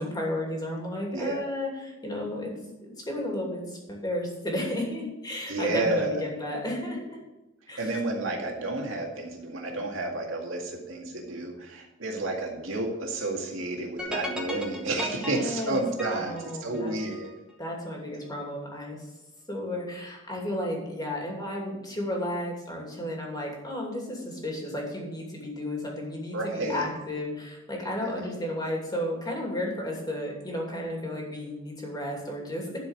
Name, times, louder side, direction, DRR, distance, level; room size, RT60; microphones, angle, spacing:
voice 1, 0.0-2.5 2.8-7.2 7.7-7.9 15.1-15.8 16.1-16.9 17.6-19.0 19.5-32.8, left 1 dB, 20° left, -1 dB, 2.6 m, -33 dB
voice 2, 5.5-6.2 7.8-17.3 26.3-26.8 28.0-28.3, right 2 dB, 80° right, 0 dB, 2.1 m, -31 dB
sound 1, 14.0-17.4, equal, 5° right, 1.5 m, -36 dB
11.5 x 5.1 x 6.4 m, 1.0 s
head